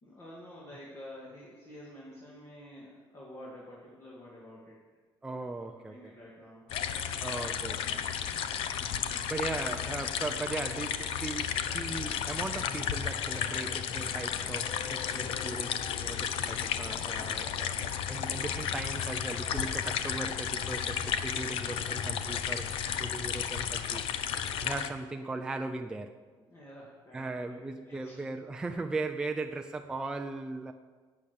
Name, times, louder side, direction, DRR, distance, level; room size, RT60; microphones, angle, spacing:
voice 1, 0.0-4.8 5.3-6.7 26.5-28.3, left 1 dB, 30° left, -5 dB, 2.4 m, -49 dB
voice 2, 5.2-6.1 7.2-8.1 9.3-24.1 24.6-26.1 27.1-30.7, right 3 dB, 10° right, 4 dB, 0.4 m, -38 dB
sound 1, 6.7-24.9, left 8 dB, 75° left, 0.8 m, -33 dB
12.0 x 8.6 x 6.7 m, 1.4 s
cardioid pair, 175°, 9 cm